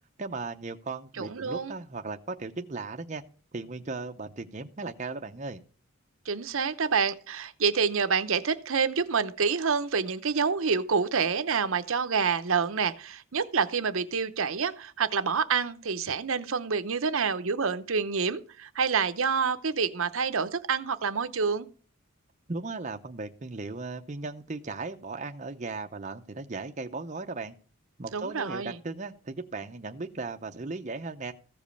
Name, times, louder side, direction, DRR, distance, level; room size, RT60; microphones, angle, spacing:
voice 1, 0.2-3.2 3.5-5.6 22.5-27.6 28.0-31.3, right 3 dB, 35° right, 0.6 m, -37 dB
voice 2, 1.2-1.7 6.3-21.7 28.1-28.8, right 5 dB, 65° right, 0.8 m, -27 dB
15.0 x 5.2 x 6.9 m
head